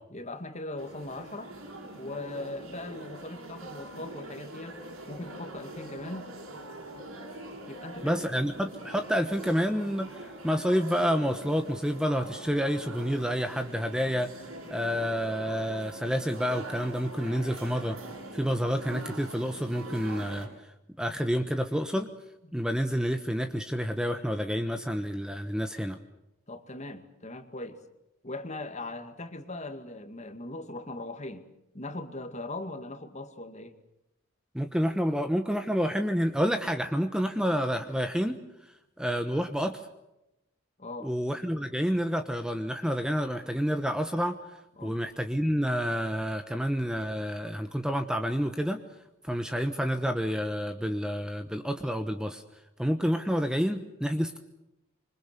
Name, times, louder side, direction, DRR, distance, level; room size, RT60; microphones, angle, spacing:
voice 1, 0.1-1.5 1.9-4.8 5.1-6.3 7.7-8.4 22.5-22.6 26.5-27.8 28.2-31.5 31.7-33.8 40.8-41.1 44.8-45.0, left 2 dB, 30° left, 8 dB, 2.2 m, -39 dB
sound 1, 0.8-20.5, right 1 dB, 80° right, 7.6 m, -43 dB
voice 2, 8.0-18.0 18.3-20.5 21.0-22.1 22.5-26.0 34.5-38.4 39.0-39.9 41.0-44.4 44.8-48.8 49.2-52.4 52.8-54.4, equal, 5° right, 7 dB, 1.1 m, -29 dB
26.5 x 25.0 x 6.8 m, 0.89 s
head